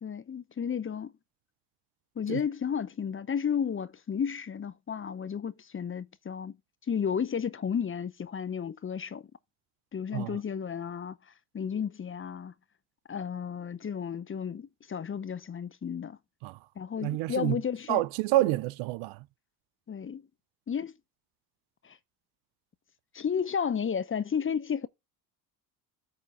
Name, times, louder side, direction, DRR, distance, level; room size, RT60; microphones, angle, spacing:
voice 1, 0.0-1.1 2.2-6.5 6.9-9.3 9.9-11.2 11.5-12.5 13.1-16.2 16.8-18.0 19.9-20.2 20.7-20.9 21.8-22.0 23.1-24.9, left 7 dB, 25° left, 0.7 m, -32 dB
voice 2, 17.0-17.6 17.9-19.2, right 17 dB, 75° right, 0.6 m, -28 dB
8.6 x 3.7 x 6.7 m
hypercardioid pair, 65°, 48 cm